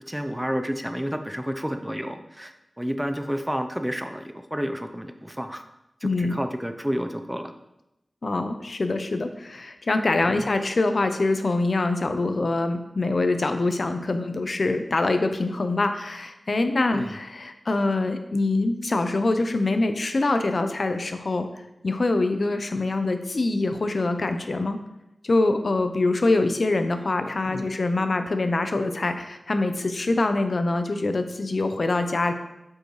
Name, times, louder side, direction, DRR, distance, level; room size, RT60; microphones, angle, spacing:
voice 1, 0.1-5.6 6.0-7.5 10.3-10.5 16.9-17.1 27.5-27.7, equal, 5° right, 7 dB, 0.6 m, -30 dB
voice 2, 6.0-6.4 8.2-21.5 21.8-24.8 25.2-32.3, left 2 dB, 60° left, 7 dB, 0.6 m, -24 dB
8.3 x 5.4 x 3.2 m, 0.90 s
wide cardioid pair, 55°, 0 cm